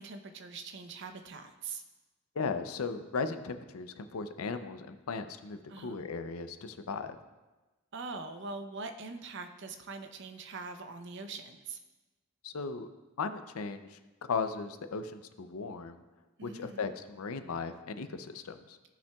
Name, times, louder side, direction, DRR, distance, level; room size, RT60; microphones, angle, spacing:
voice 1, 0.0-1.8 5.7-6.0 7.9-11.8 16.4-16.9, right 4 dB, 55° right, 7 dB, 0.6 m, -43 dB
voice 2, 2.4-7.2 12.4-12.9 13.2-14.0 14.3-16.0 16.4-18.8, left 4 dB, 80° left, 10 dB, 0.5 m, -37 dB
14.0 x 5.7 x 2.3 m, 1.2 s
head